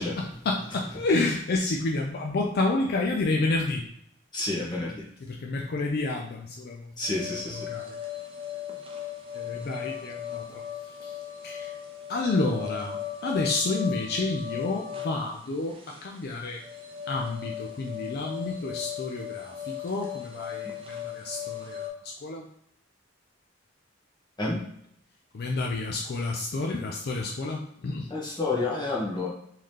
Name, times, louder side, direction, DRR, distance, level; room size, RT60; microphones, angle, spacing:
voice 1, 0.2-3.9 5.2-6.9 7.5-8.0 9.3-10.6 11.0-11.2 11.4-11.7 12.1-16.6 17.1-22.5 25.3-28.1, left 2 dB, 50° left, 0 dB, 0.4 m, -30 dB
voice 2, 4.3-5.0 7.0-7.7 24.4-24.6 28.1-29.3, left 2 dB, 20° left, -4 dB, 1.0 m, -29 dB
sound 1, 7.0-21.9, left 9 dB, 25° right, 0.6 m, -37 dB
3.8 x 2.7 x 3.2 m, 0.72 s
head